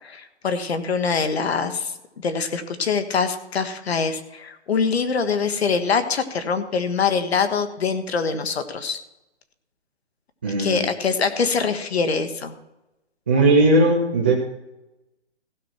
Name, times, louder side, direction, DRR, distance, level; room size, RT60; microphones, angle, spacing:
voice 1, 0.0-9.0 10.6-12.5, left 5 dB, 65° left, 9 dB, 1.6 m, -24 dB
voice 2, 10.4-10.9 13.3-14.3, right 2 dB, 10° right, -3 dB, 0.4 m, -18 dB
15.5 x 6.2 x 5.9 m, 0.93 s
hypercardioid pair, 155°, 34 cm